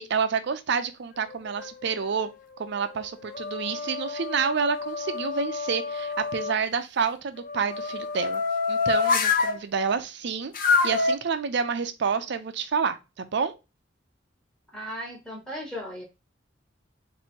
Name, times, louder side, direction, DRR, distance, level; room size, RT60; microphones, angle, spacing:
voice 1, 0.0-2.3 2.6-8.4 8.7-10.5 10.8-13.6, right 6 dB, 65° right, 0.5 m, -28 dB
sound 1, 1.2-2.0 2.6-6.5 7.4-9.6 10.5-11.2, left 4 dB, 45° left, 0.5 m, -28 dB
voice 2, 14.7-16.0, equal, 5° left, 1.0 m, -36 dB
2.9 x 2.7 x 4.2 m
head